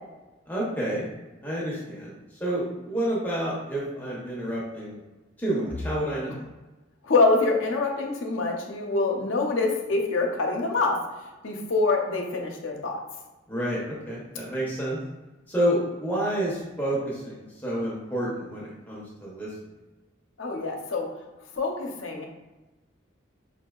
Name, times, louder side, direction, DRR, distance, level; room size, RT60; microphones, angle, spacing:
voice 1, 0.5-1.1 1.4-5.0 5.4-6.4 13.5-15.0 15.5-19.5, right 1 dB, 10° left, -6 dB, 0.7 m, -29 dB
voice 2, 7.0-11.0 11.4-13.0 20.4-21.1 21.6-22.3, left 3 dB, 70° left, 2 dB, 0.7 m, -25 dB
5.1 x 2.7 x 2.3 m, 1.1 s
head